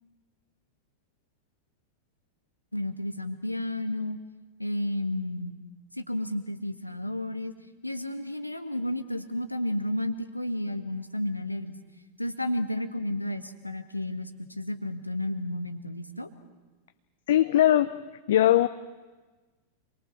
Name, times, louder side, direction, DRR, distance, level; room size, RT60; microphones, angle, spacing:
voice 1, 2.7-4.2 4.6-5.6 5.9-7.5 7.8-11.8 12.2-16.3, left 1 dB, 85° left, 8 dB, 1.5 m, -32 dB
voice 2, 17.3-17.9 18.3-18.7, left 12 dB, 60° left, 11 dB, 0.7 m, -20 dB
28.0 x 22.0 x 6.3 m, 1.3 s
figure-of-eight pair, 90°, 0 cm